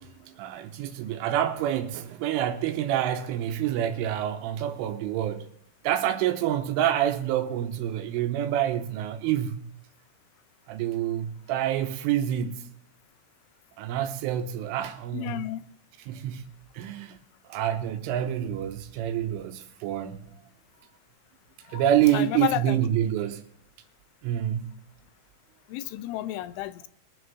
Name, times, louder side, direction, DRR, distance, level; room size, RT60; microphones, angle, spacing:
voice 1, 0.0-5.5 5.8-9.6 10.7-12.7 13.8-15.5 16.1-16.5 16.7-17.2 17.5-20.3 21.7-23.4 24.2-24.7, right 11 dB, 85° right, 3.3 m, -27 dB
voice 2, 15.1-15.6 21.7-21.8 22.1-22.8 25.7-26.9, left 14 dB, 80° left, 3.0 m, -31 dB
22.5 x 7.9 x 4.0 m
omnidirectional pair, 5.8 m